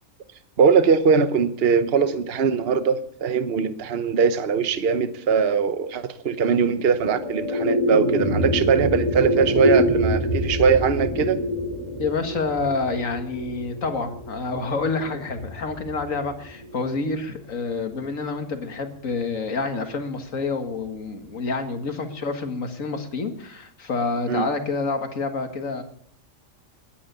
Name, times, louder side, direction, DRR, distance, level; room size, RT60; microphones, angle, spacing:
voice 1, 0.6-11.4 24.3-24.5, right 6 dB, 50° right, 11 dB, 1.2 m, -21 dB
sound 1, 6.6-17.1, equal, 25° left, 3.1 m, -26 dB
voice 2, 12.0-25.8, left 4 dB, 85° left, 6 dB, 2.2 m, -28 dB
20.5 x 9.9 x 6.8 m, 0.64 s
omnidirectional pair, 1.3 m